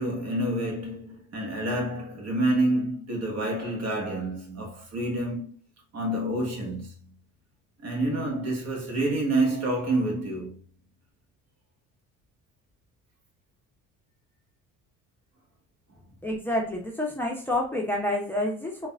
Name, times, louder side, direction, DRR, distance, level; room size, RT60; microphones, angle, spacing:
voice 1, 0.0-5.6 5.9-6.9 7.8-10.6, right 1 dB, 45° right, 1.4 m, -28 dB
voice 2, 16.2-18.9, left 1 dB, 5° left, 0.7 m, -28 dB
3.8 x 2.3 x 2.4 m
supercardioid pair, 75°, 35 cm